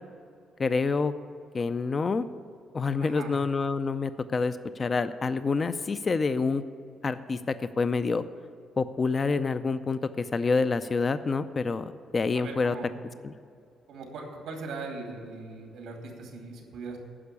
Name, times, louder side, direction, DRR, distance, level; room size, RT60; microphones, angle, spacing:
voice 1, 0.6-1.1 1.5-2.2 2.7-6.6 7.0-8.2 8.8-12.7 13.2-13.3, left 4 dB, 35° left, 12 dB, 0.4 m, -27 dB
voice 2, 3.0-3.4 12.3-12.9 13.9-17.0, right 3 dB, 90° right, 1 dB, 2.4 m, -40 dB
10.0 x 5.9 x 8.4 m, 2.3 s
cardioid pair, 90°, 0 cm